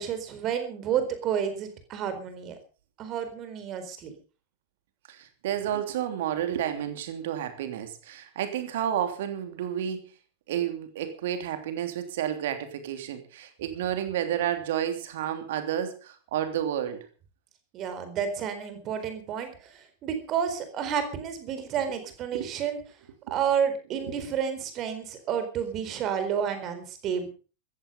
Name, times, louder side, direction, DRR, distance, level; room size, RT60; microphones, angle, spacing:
voice 1, 0.0-2.6 3.0-4.1 17.7-22.8 23.3-27.3, right 8 dB, 35° right, 9 dB, 4.3 m, -30 dB
voice 2, 5.1-10.0 10.5-17.0 22.3-22.5 23.3-23.4 24.1-24.2, right 10 dB, 55° right, 8 dB, 3.1 m, -31 dB
15.0 x 14.5 x 5.3 m, 0.37 s
figure-of-eight pair, 90°, 0 cm